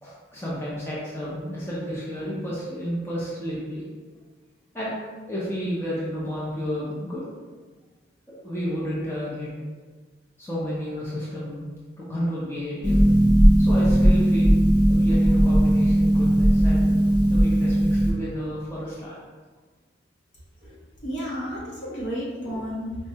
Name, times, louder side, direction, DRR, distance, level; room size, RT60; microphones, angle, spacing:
voice 1, 0.0-3.8 4.7-4.9 5.3-7.3 8.3-9.5 10.4-11.7 12.0-13.0 13.6-14.5 14.8-19.1 21.9-22.0 22.4-22.6, equal, 10° left, -8 dB, 0.6 m, -31 dB
Harp, 12.8-18.1, right 1 dB, 25° right, 0.7 m, -18 dB
voice 2, 21.0-23.0, equal, 60° left, -6 dB, 1.0 m, -32 dB
4.5 x 2.2 x 2.8 m, 1.4 s
head